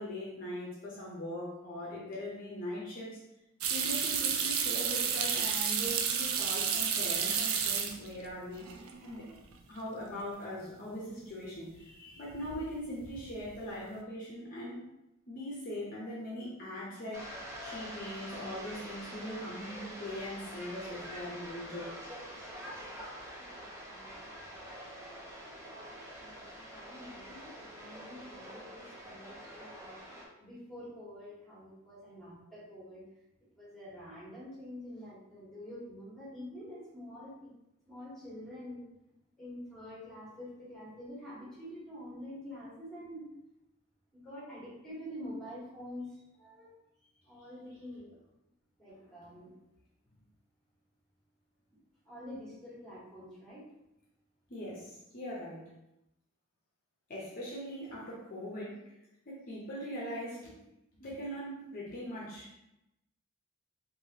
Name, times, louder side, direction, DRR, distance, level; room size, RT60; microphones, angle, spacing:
voice 1, 0.0-3.2 3.7-9.2 9.7-14.8 15.3-17.3 17.6-21.9 49.0-49.1 54.5-55.7 57.1-58.8 59.3-60.6 61.0-62.5, equal, 40° left, -6 dB, 0.7 m, -41 dB
sound 1, 3.6-8.3 8.6-9.2 9.5-9.6 12.3-12.7 13.0-13.5, right 7 dB, 85° right, 0.4 m, -31 dB
voice 2, 4.8-5.2 9.0-9.2 23.4-24.4 26.2-26.4 26.7-30.0 30.4-33.0 33.6-37.5 37.9-38.8 39.4-43.3 44.1-46.7 47.2-48.1 48.8-49.5 52.0-53.6, left 1 dB, ahead, -8 dB, 1.3 m, -47 dB
sound 2, 17.1-30.3, equal, 15° right, 0.6 m, -46 dB
3.2 x 2.6 x 2.8 m, 0.87 s
head